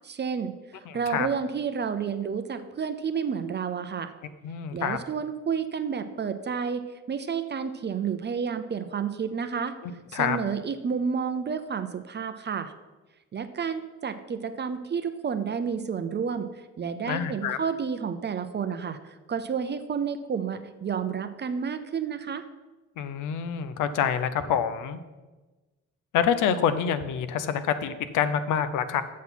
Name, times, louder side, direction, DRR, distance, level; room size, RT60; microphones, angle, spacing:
voice 1, 0.0-4.1 4.7-9.7 10.1-12.7 13.3-16.5 16.8-22.4, right 6 dB, 35° right, 10 dB, 0.6 m, -30 dB
voice 2, 0.9-1.3 4.4-5.0 10.1-10.4 17.1-17.6 23.0-25.0 26.1-29.0, left 8 dB, 85° left, 12 dB, 0.6 m, -26 dB
7.4 x 5.9 x 5.7 m, 1.2 s
cardioid pair, 90°, 30 cm